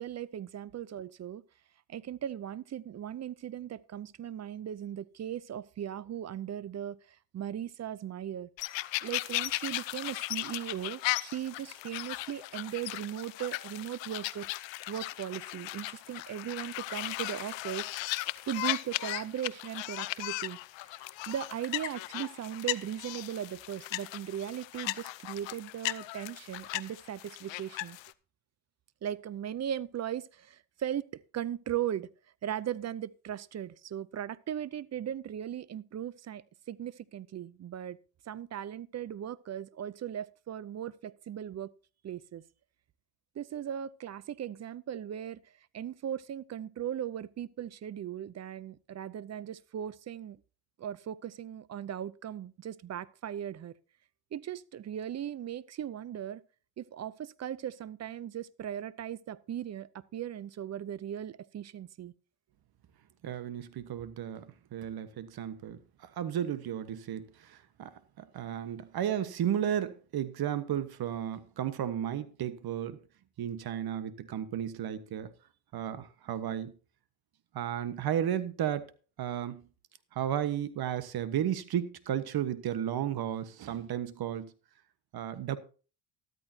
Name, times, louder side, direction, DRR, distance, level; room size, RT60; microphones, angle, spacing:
voice 1, 0.0-1.4 1.9-8.5 9.0-14.5 14.9-17.9 18.5-20.6 20.9-28.0 29.0-32.1 32.4-38.0 38.3-41.7 42.0-42.4 43.3-50.4 50.8-53.8 54.3-56.4 56.8-62.1, right 10 dB, 35° right, 0.6 m, -38 dB
sound 1, 8.6-28.1, left 19 dB, 70° left, 0.8 m, -37 dB
voice 2, 63.2-67.9 68.2-73.0 73.4-75.3 75.7-76.7 77.5-78.9 79.2-79.6 80.1-84.5 85.1-85.6, right 10 dB, 50° right, 1.4 m, -33 dB
13.5 x 13.0 x 2.8 m
cardioid pair, 100°, 47 cm